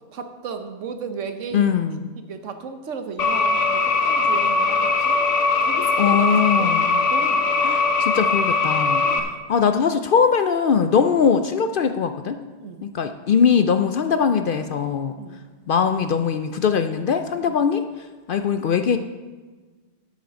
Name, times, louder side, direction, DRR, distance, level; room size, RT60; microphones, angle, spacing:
voice 1, 0.1-1.8 2.3-5.1 5.6-6.3 6.6-6.7 7.1-7.4 9.0-9.3 12.6-12.8 15.2-15.4 17.5-17.6, right 5 dB, 80° right, 7 dB, 1.3 m, -34 dB
voice 2, 1.5-2.1 6.0-7.0 7.6-12.4 12.8-15.1 15.7-17.8 18.3-19.0, left 6 dB, 60° left, 8 dB, 0.6 m, -21 dB
sound 1, 3.2-9.2, left 4 dB, 85° left, 1.2 m, -20 dB
9.5 x 8.4 x 5.2 m, 1.4 s
omnidirectional pair, 1.2 m